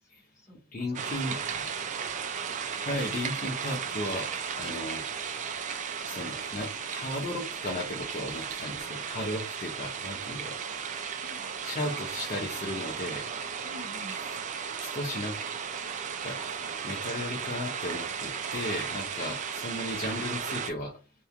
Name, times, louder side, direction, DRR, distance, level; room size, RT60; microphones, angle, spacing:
voice 1, 0.0-1.7 11.2-11.5 13.6-14.2 19.2-19.3, left 1 dB, 15° left, -4 dB, 1.3 m, -49 dB
voice 2, 0.7-1.4 2.8-5.1 6.0-10.6 11.6-13.4 14.8-15.4 16.2-16.4 16.8-21.0, left 1 dB, 40° left, -2 dB, 0.5 m, -35 dB
sound 1, 0.9-20.7, right 7 dB, 35° right, 0.3 m, -35 dB
sound 2, 2.0-9.2, equal, 15° right, 0.9 m, -58 dB
2.9 x 2.2 x 2.4 m, 0.33 s
head